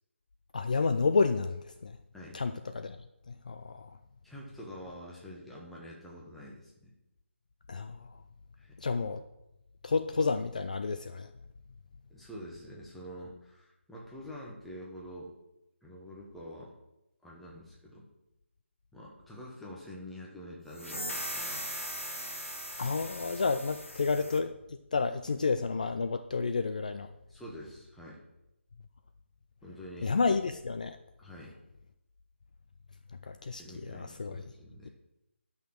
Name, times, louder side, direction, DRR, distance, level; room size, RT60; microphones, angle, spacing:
voice 1, 0.5-2.0 2.3-3.0 3.3-3.9 7.7-8.0 8.8-9.2 9.8-11.3 22.8-24.5 24.9-27.1 30.0-31.0 33.2-34.4, left 4 dB, 40° left, 9 dB, 0.4 m, -30 dB
voice 2, 4.2-6.9 8.6-8.7 12.1-15.3 15.8-16.7 17.2-18.0 18.9-21.7 27.3-28.2 29.6-30.1 31.2-31.5 33.5-34.9, equal, ahead, -4 dB, 1.0 m, -46 dB
sound 1, 20.7-24.4, equal, 85° left, 1.7 m, -39 dB
11.0 x 6.0 x 6.2 m, 0.91 s
figure-of-eight pair, 155°, 7 cm